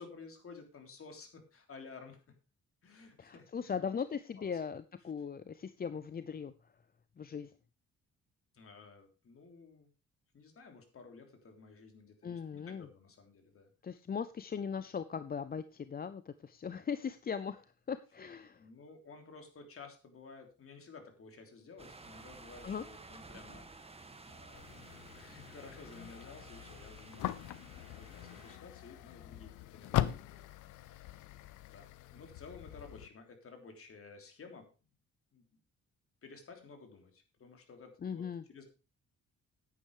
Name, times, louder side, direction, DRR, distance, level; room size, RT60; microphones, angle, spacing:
voice 1, 0.0-2.2 2.8-3.8 4.4-4.6 8.5-9.9 10.3-14.0 18.6-30.4 30.8-31.3 31.7-34.7 35.3-35.4 36.2-38.6, left 4 dB, 45° left, 5 dB, 3.4 m, -54 dB
voice 2, 3.2-6.5 7.2-7.5 12.2-12.9 13.8-18.6 22.6-22.8 38.0-38.4, left 6 dB, 30° left, 13 dB, 0.6 m, -39 dB
sound 1, 21.8-28.6, right 3 dB, 20° right, 1.6 m, -53 dB
sound 2, 24.5-33.1, left 13 dB, 85° left, 0.8 m, -41 dB
10.0 x 8.9 x 4.8 m, 0.32 s
cardioid pair, 90°, 30 cm